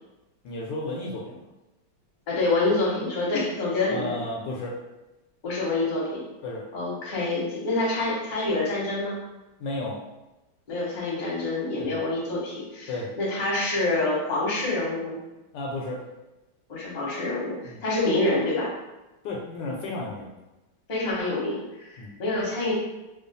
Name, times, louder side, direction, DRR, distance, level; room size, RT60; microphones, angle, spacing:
voice 1, 0.4-1.4 3.9-4.8 6.4-6.6 9.6-10.0 11.8-12.0 12.9-13.1 15.5-16.0 17.6-17.8 19.2-20.3 22.0-22.1, left 2 dB, 75° left, -1 dB, 1.2 m, -33 dB
voice 2, 2.3-4.2 5.4-6.2 6.7-9.2 10.7-15.2 16.7-18.7 20.9-22.7, left 2 dB, 35° left, -5 dB, 0.8 m, -27 dB
3.0 x 2.2 x 3.9 m, 1.0 s
omnidirectional pair, 2.1 m